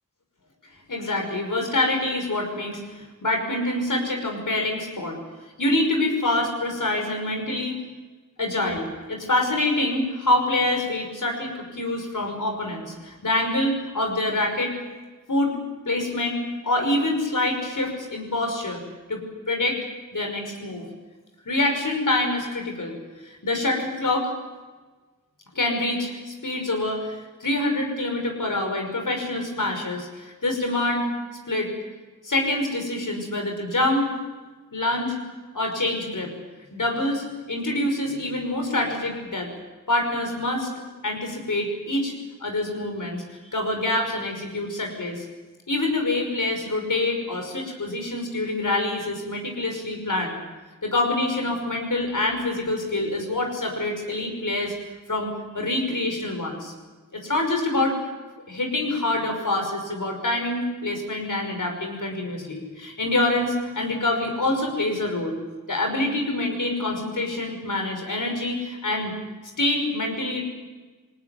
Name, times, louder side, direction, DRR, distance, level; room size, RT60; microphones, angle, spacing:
voice 1, 0.9-5.2 5.6-7.8 8.4-14.7 15.3-15.5 15.9-18.8 19.1-19.2 19.5-19.8 20.1-20.8 21.5-23.0 23.2-24.3 25.5-31.1 31.5-31.7 32.2-34.1 34.7-35.2 35.5-36.3 36.7-39.5 39.9-40.7 41.0-42.1 42.4-43.2 43.5-45.3 45.7-50.4 50.8-54.7 55.1-55.3 55.5-56.7 57.1-57.9 58.5-65.4 65.7-69.1 69.6-70.4, left 2 dB, 65° left, 3 dB, 5.9 m, -26 dB
21.0 x 18.5 x 9.4 m, 1.3 s
cardioid pair, 40°, 34 cm